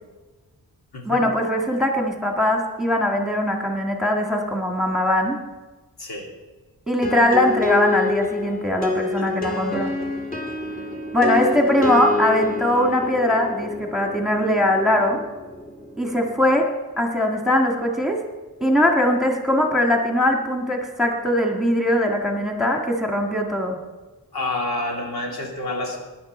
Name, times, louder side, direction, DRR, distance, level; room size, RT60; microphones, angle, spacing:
voice 1, 1.1-5.4 6.9-9.9 11.1-15.2 16.0-16.7 17.0-18.2 18.6-23.8, left 1 dB, ahead, 1 dB, 1.8 m, -21 dB
voice 2, 6.0-6.3 9.2-9.3 24.3-26.0, left 2 dB, 75° left, 0 dB, 2.7 m, -28 dB
sound 1, 7.0-16.6, left 3 dB, 20° left, 2.2 m, -28 dB
16.5 x 10.5 x 4.4 m, 1.2 s
wide cardioid pair, 95°, 38 cm